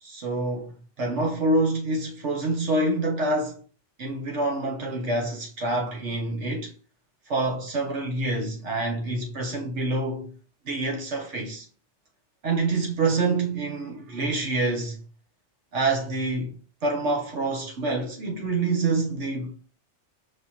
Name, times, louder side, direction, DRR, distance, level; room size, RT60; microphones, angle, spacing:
voice 1, 0.0-3.6 4.0-6.7 7.3-10.3 10.6-11.7 12.4-15.0 15.7-16.6 16.8-19.5, right 2 dB, 75° right, 1.2 m, -27 dB
5.0 x 3.3 x 2.8 m
omnidirectional pair, 1.2 m